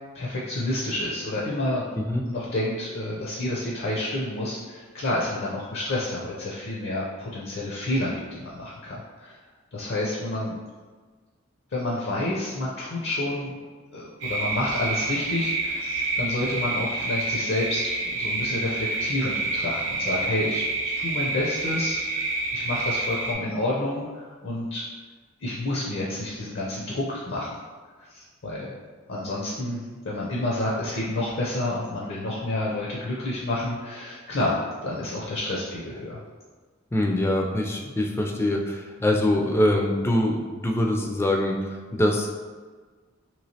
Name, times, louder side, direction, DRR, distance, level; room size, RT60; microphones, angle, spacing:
voice 1, 0.1-1.8 2.2-9.4 9.7-10.6 11.7-13.5 13.9-22.3 22.5-24.8 25.4-27.5 28.1-28.7 29.1-34.6 34.8-36.2, left 1 dB, 60° left, -5 dB, 0.5 m, -29 dB
sound 1, 14.2-23.3, right 2 dB, 65° right, 0.6 m, -28 dB
voice 2, 36.9-42.3, left 1 dB, 15° left, 1 dB, 0.3 m, -24 dB
3.1 x 3.0 x 2.8 m, 1.4 s
head